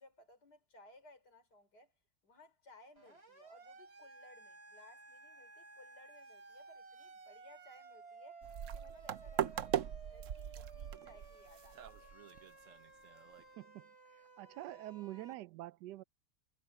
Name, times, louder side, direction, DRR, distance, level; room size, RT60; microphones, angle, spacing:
voice 1, 0.0-1.9 2.2-8.5 8.7-12.1, left 1 dB, 75° left, 5.6 m, -61 dB
Siren, 3.0-15.3, right 4 dB, 40° right, 5.0 m, -56 dB
sound 1, 8.4-13.4, right 10 dB, 60° right, 1.0 m, -40 dB
voice 2, 13.6-13.9 14.4-16.0, right 15 dB, 85° right, 1.2 m, -46 dB
omnidirectional pair, 1.8 m